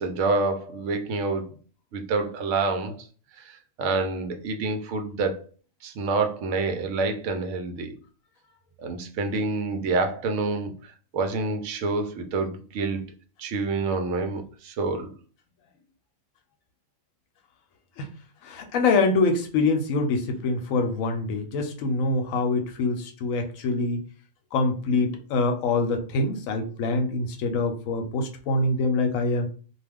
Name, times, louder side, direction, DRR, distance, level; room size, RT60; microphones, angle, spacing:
voice 1, 0.0-1.6 1.9-3.1 3.4-5.4 5.8-7.9 8.8-13.1 13.4-15.1, right 3 dB, 70° right, 6 dB, 0.9 m, -27 dB
voice 2, 18.4-24.0 24.5-29.5, left 3 dB, 80° left, 5 dB, 1.0 m, -25 dB
2.4 x 2.3 x 3.4 m, 0.40 s
omnidirectional pair, 1.4 m